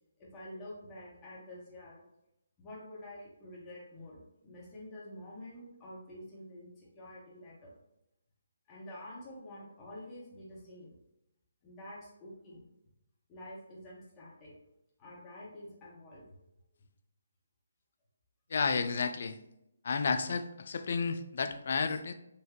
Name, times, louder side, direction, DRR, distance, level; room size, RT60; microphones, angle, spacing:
voice 1, 0.2-2.0 2.6-7.7 8.7-11.0 11.6-12.7 13.3-14.5 15.0-16.2, left 1 dB, 20° left, -6 dB, 1.2 m, -48 dB
voice 2, 18.5-19.4 19.8-22.1, left 5 dB, 55° left, 9 dB, 0.3 m, -31 dB
4.0 x 2.6 x 3.0 m, 0.84 s
figure-of-eight pair, 145°, 0 cm